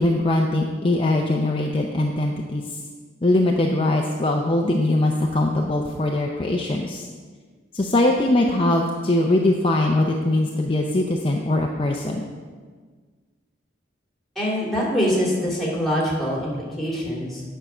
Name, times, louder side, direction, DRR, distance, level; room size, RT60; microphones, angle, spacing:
voice 1, 0.0-2.8 3.2-7.1 7.7-12.2, left 1 dB, 30° left, 1 dB, 0.6 m, -21 dB
voice 2, 14.4-17.4, equal, ahead, -4 dB, 2.6 m, -24 dB
9.1 x 5.6 x 6.0 m, 1.5 s
head